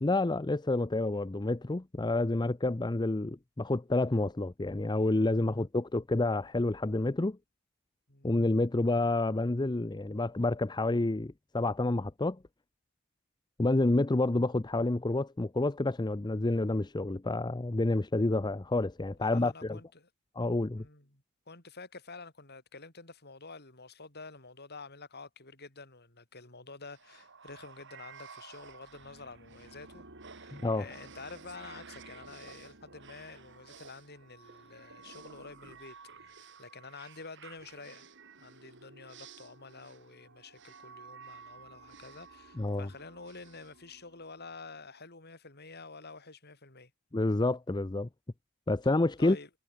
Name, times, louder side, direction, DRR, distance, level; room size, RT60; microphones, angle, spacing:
voice 1, 0.0-7.4 8.2-12.4 13.6-19.8 20.4-20.8 30.5-30.9 42.6-42.9 47.1-48.1 48.7-49.4, left 2 dB, 20° left, 0.6 m, -29 dB
voice 2, 5.3-5.6 8.1-8.3 19.2-20.1 20.8-30.1 30.4-38.1 38.4-46.9 49.2-49.5, left 3 dB, 50° left, 6.0 m, -49 dB
sound 1, 26.9-44.5, right 5 dB, 55° right, 7.1 m, -53 dB
head